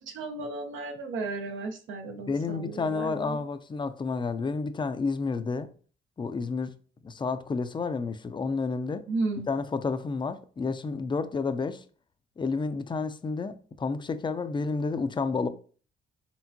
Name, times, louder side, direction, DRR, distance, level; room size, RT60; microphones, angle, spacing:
voice 1, 0.0-3.4 9.1-9.5, right 3 dB, 75° right, 0.8 m, -34 dB
voice 2, 2.3-5.7 6.2-6.7 7.0-9.1 9.5-11.8 12.4-15.5, left 4 dB, 25° left, 0.4 m, -30 dB
4.4 x 3.4 x 2.7 m
cardioid pair, 90°, 20 cm